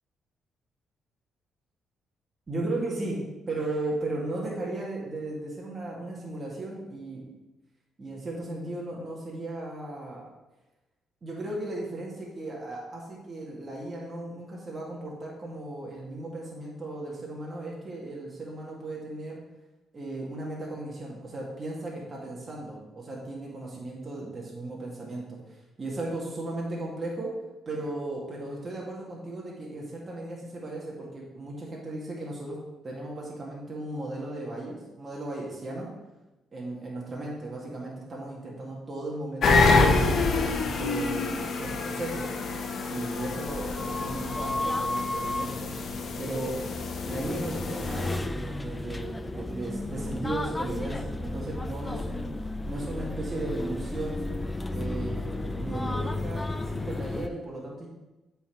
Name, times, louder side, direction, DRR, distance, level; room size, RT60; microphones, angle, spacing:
voice 1, 2.5-3.2 3.5-7.3 8.0-10.2 11.2-19.4 19.9-25.4 25.8-27.3 27.7-32.6 32.8-35.9 36.5-40.2 40.7-42.2 42.9-45.7 46.2-46.6 47.0-52.3 52.7-54.2 54.7-57.9, right 2 dB, 35° right, -4 dB, 2.0 m, -36 dB
sound 1, 39.4-48.2, left 3 dB, 55° left, 1.0 m, -27 dB
sound 2, 43.5-57.3, left 2 dB, 15° left, 0.4 m, -33 dB
8.2 x 4.6 x 4.6 m, 1.0 s
cardioid pair, 90°, 0 cm